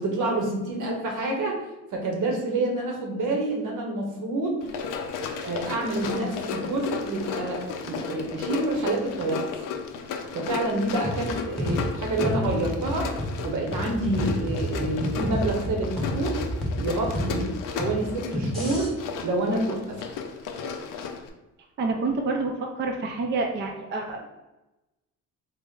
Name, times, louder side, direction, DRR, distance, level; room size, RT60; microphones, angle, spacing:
voice 1, 0.0-1.6 1.9-4.7 5.4-9.6 10.3-13.1 13.4-16.4 16.8-18.9 19.2-20.0, right 2 dB, 75° right, 1 dB, 1.0 m, -28 dB
Run, 4.6-21.3, left 6 dB, 90° left, 0.5 m, -34 dB
sound 1, 11.0-18.9, equal, ahead, 0.9 m, -30 dB
voice 2, 21.8-24.3, right 3 dB, 35° right, 2 dB, 0.4 m, -28 dB
3.9 x 2.1 x 3.6 m, 1.0 s
cardioid pair, 120°, 31 cm